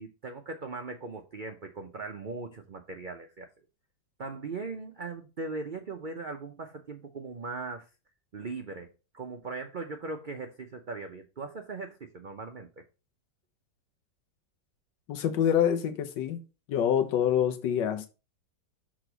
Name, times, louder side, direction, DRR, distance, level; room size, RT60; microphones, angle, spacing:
voice 1, 0.0-3.5 4.2-7.9 8.3-12.7, right 3 dB, 80° right, 0.4 m, -39 dB
voice 2, 15.1-16.4 16.7-18.1, left 9 dB, 80° left, 1.5 m, -26 dB
6.3 x 3.9 x 5.0 m
omnidirectional pair, 1.9 m